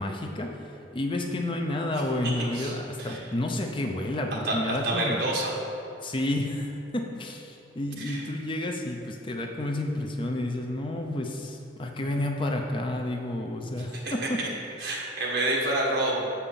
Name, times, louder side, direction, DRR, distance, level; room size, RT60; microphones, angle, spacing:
voice 1, 0.0-5.2 6.0-14.4, left 1 dB, 30° left, 2 dB, 0.6 m, -30 dB
voice 2, 4.8-5.6 8.0-8.2 14.0-14.5 14.8-16.2, right 1 dB, 65° right, -3 dB, 1.6 m, -28 dB
7.2 x 5.7 x 6.9 m, 2.7 s
head